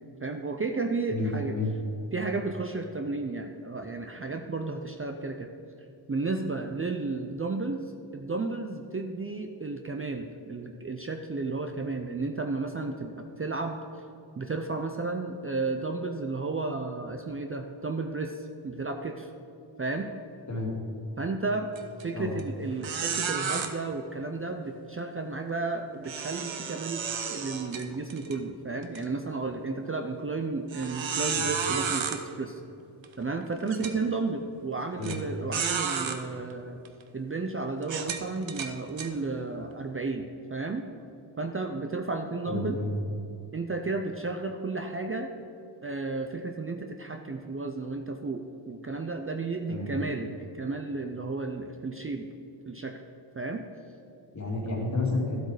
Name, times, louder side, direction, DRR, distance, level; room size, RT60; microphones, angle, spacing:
voice 1, 0.2-1.6 2.1-5.5 6.1-7.9 8.1-13.8 14.4-19.3 19.8-20.1 21.2-21.7 22.0-32.6 33.2-36.8 37.1-40.9 41.4-42.8 43.5-45.3 45.8-52.3 52.7-52.9 53.3-53.6, right 3 dB, 25° right, 4 dB, 0.5 m, -33 dB
voice 2, 1.1-1.7 20.5-20.7 22.1-22.3 31.3-31.5 35.0-35.2 42.4-42.9 49.7-49.9 54.3-55.4, left 3 dB, 35° left, -1 dB, 2.3 m, -30 dB
sound 1, 21.8-22.0 22.4-22.5 22.8-23.7 26.0-28.4 28.8-29.0 29.6-29.7 30.7-32.2 33.0-33.1 33.7-34.0 35.0-35.2 35.5-36.2 36.9-37.0 37.8-39.1, right 6 dB, 65° right, 1.0 m, -32 dB
13.0 x 8.0 x 4.9 m, 2.8 s
wide cardioid pair, 130°, 49 cm